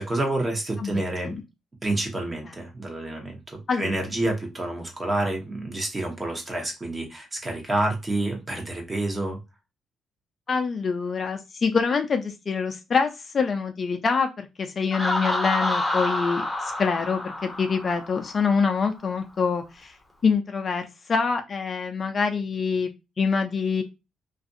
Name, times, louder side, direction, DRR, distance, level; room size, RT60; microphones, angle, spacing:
voice 1, 0.0-1.3 1.8-9.4, right 2 dB, 25° right, 0.9 m, -28 dB
voice 2, 10.5-19.9 20.2-22.9 23.2-23.8, left 5 dB, 40° left, 0.4 m, -25 dB
Laughter, 14.9-18.6, left 1 dB, ahead, 0.8 m, -28 dB
2.5 x 2.2 x 2.6 m
cardioid pair, 90°, 0 cm